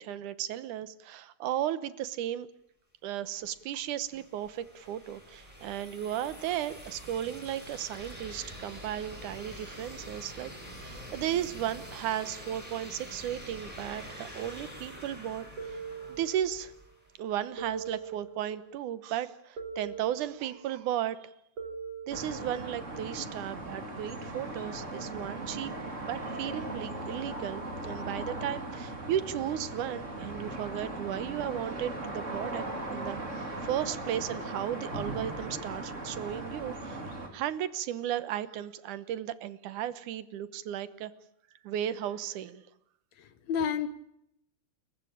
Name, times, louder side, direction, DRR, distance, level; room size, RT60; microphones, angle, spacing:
voice 1, 0.0-2.5 3.0-15.8 16.1-16.7 17.2-21.3 22.1-25.7 26.0-32.7 32.9-37.0 37.3-41.1 41.6-42.6, right 11 dB, 80° right, 15 dB, 2.5 m, -35 dB
sound 1, 3.5-17.2, equal, 5° right, 7.6 m, -46 dB
sound 2, 15.6-16.7 17.6-18.8 19.6-20.7 21.6-22.8, right 5 dB, 55° right, 4.9 m, -42 dB
sound 3, 22.1-37.3, right 2 dB, 25° right, 3.5 m, -38 dB
voice 2, 43.2-43.9, left 7 dB, 65° left, 13 dB, 2.4 m, -30 dB
29.0 x 15.0 x 8.7 m, 0.78 s
omnidirectional pair, 3.6 m